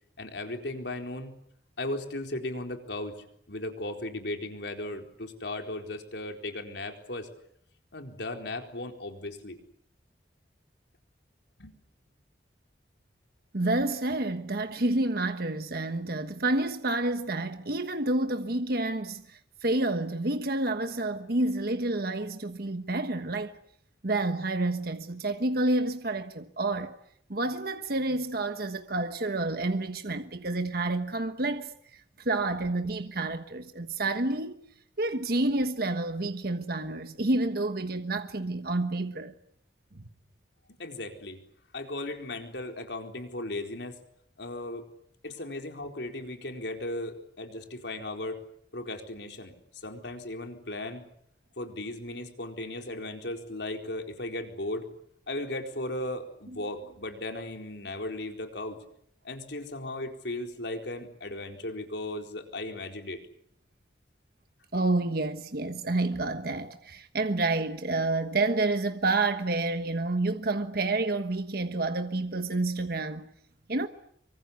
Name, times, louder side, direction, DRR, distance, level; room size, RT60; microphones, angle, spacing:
voice 1, 0.2-1.3 1.8-3.1 3.5-7.3 7.9-9.6 11.6-11.7 40.8-41.4 41.7-44.0 44.4-44.9 45.2-48.4 48.7-49.5 49.8-51.0 51.6-54.9 55.3-58.8 59.2-63.2, left 1 dB, 75° left, 4.3 m, -36 dB
voice 2, 13.5-23.6 24.0-27.0 27.3-34.6 35.0-39.3 39.9-40.0 64.7-73.3 73.7-73.9, right 2 dB, 55° right, 1.3 m, -29 dB
26.0 x 24.5 x 8.3 m
head